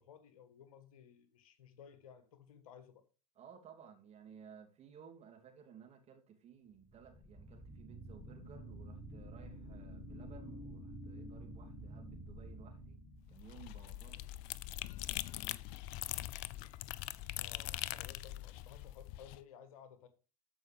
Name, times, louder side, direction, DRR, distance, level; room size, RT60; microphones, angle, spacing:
voice 1, 0.0-3.0 17.3-20.1, left 8 dB, 65° left, 1.5 m, -57 dB
voice 2, 3.4-13.0 13.3-14.3, right 7 dB, 35° right, 2.7 m, -57 dB
sound 1, 6.8-13.9, right 1 dB, 10° left, 3.6 m, -50 dB
sound 2, 13.3-19.4, left 16 dB, 50° left, 0.5 m, -42 dB
13.5 x 5.4 x 3.4 m
figure-of-eight pair, 75°, 19 cm